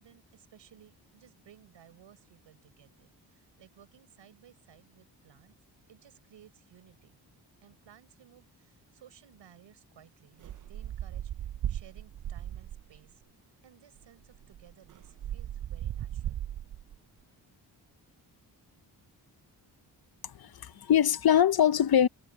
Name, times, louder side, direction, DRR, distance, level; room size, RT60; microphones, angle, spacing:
voice 1, 0.0-5.6 5.9-7.2 7.6-13.2 13.6-16.5, right 10 dB, 90° right, 4.5 m, -58 dB
sound 1, 10.4-13.0 14.0-14.1 14.3-17.0, right 11 dB, 50° right, 0.4 m, -37 dB
voice 2, 20.2-22.1, left 9 dB, 60° left, 0.8 m, -23 dB
cardioid pair, 65°, 43 cm